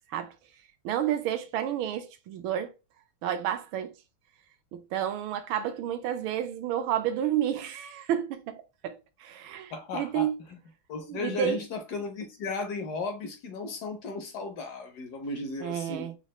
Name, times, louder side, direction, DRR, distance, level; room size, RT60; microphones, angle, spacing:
voice 1, 0.8-2.7 3.2-3.9 4.7-10.4 11.1-11.6 15.6-16.1, right 10 dB, 75° right, 1.3 m, -30 dB
voice 2, 9.7-10.3 10.9-16.1, left 3 dB, 70° left, 0.9 m, -35 dB
4.2 x 2.4 x 2.9 m
omnidirectional pair, 2.4 m